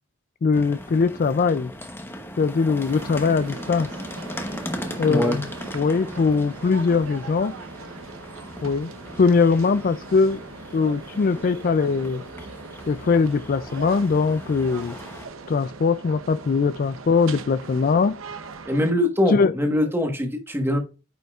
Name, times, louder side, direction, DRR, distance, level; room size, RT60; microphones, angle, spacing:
voice 1, 0.4-1.7 2.4-3.9 5.0-5.5 5.7-7.5 8.6-8.9 9.2-10.4 10.7-12.2 12.9-15.0 15.5-18.2 19.3-19.5, left 4 dB, 40° left, 0.3 m, -21 dB
sound 1, 0.5-15.2, left 1 dB, 10° left, 0.9 m, -38 dB
sound 2, 2.9-18.9, right 4 dB, 70° right, 0.8 m, -40 dB
voice 2, 5.0-5.4 18.6-20.8, left 1 dB, 10° right, 1.2 m, -22 dB
8.9 x 5.4 x 2.4 m
head